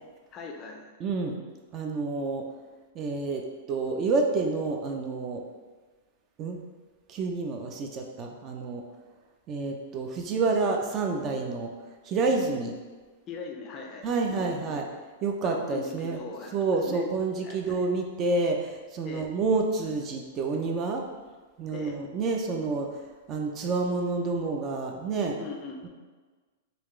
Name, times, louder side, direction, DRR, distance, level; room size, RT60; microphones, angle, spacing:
voice 1, 0.3-0.9 13.3-14.1 14.4-14.8 15.4-16.6 16.9-17.1 17.4-17.8 19.0-19.3 21.7-22.0 25.4-25.9, left 5 dB, 30° left, 2 dB, 0.4 m, -40 dB
voice 2, 1.0-1.4 1.7-2.5 2.9-5.4 6.4-6.6 7.1-8.8 9.5-11.7 12.0-12.8 14.0-14.8 15.2-16.2 16.5-21.0 21.6-22.9 23.3-25.4, right 3 dB, 30° right, 2 dB, 0.4 m, -28 dB
4.0 x 2.3 x 3.1 m, 1.4 s
hypercardioid pair, 145°, 0 cm